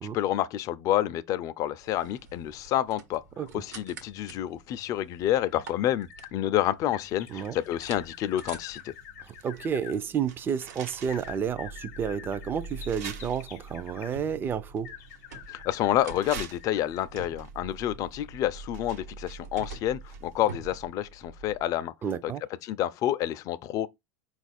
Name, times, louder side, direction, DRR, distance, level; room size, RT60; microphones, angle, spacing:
voice 1, 0.1-3.2 3.5-8.9 15.5-21.9 22.2-22.3 22.6-23.9, left 12 dB, 40° left, 0.4 m, -29 dB
sound 1, 1.8-21.7, right 3 dB, 90° right, 1.1 m, -46 dB
sound 2, 5.2-6.3 6.9-9.9 11.1-14.2 14.8-17.1 17.6-17.7, left 10 dB, 75° left, 0.7 m, -47 dB
sound 3, 8.4-9.6 9.9-11.5 12.0-12.1 12.8-13.9 14.7-15.7 16.1-20.5 20.8-20.9, right 7 dB, 70° right, 1.0 m, -46 dB
voice 2, 9.3-14.9 22.0-22.4, right 7 dB, 25° right, 0.4 m, -31 dB
4.4 x 2.4 x 4.1 m
supercardioid pair, 120°, 9 cm